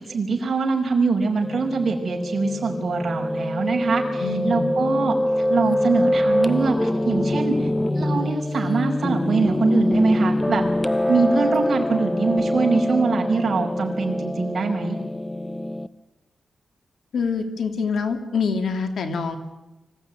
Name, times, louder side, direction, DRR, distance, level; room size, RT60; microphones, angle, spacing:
voice 1, 0.0-7.7 7.9-10.6 11.1-15.0, right 4 dB, 50° right, 0 dB, 5.2 m, -23 dB
Piano, 1.4-15.9, left 1 dB, 15° left, 0.9 m, -24 dB
voice 2, 4.2-4.7 17.1-19.4, left 5 dB, 80° left, 7 dB, 2.6 m, -25 dB
25.0 x 16.5 x 9.2 m, 1.0 s
cardioid pair, 95°, 0 cm